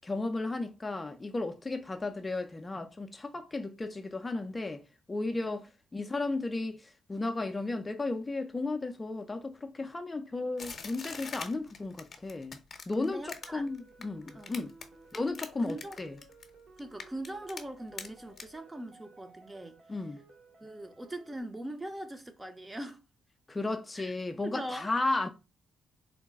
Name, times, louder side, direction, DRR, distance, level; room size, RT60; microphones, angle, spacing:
voice 1, 0.0-4.8 5.1-5.6 5.9-12.6 12.9-14.7 15.1-16.1 19.9-20.2 23.5-25.3, left 2 dB, 20° left, 0.4 m, -34 dB
sound 1, 10.6-14.8 15.1-16.5 16.8-17.6 18.0-18.1 18.4-18.5, left 5 dB, 45° left, 0.8 m, -42 dB
voice 2, 13.0-13.6 14.3-14.6 15.6-16.3 16.8-19.8 20.6-23.0 24.0-24.1 24.4-24.9, right 1 dB, 15° right, 0.6 m, -41 dB
sound 2, 13.4-21.4, right 3 dB, 55° right, 1.2 m, -58 dB
3.9 x 2.1 x 3.4 m
cardioid pair, 90°, 0 cm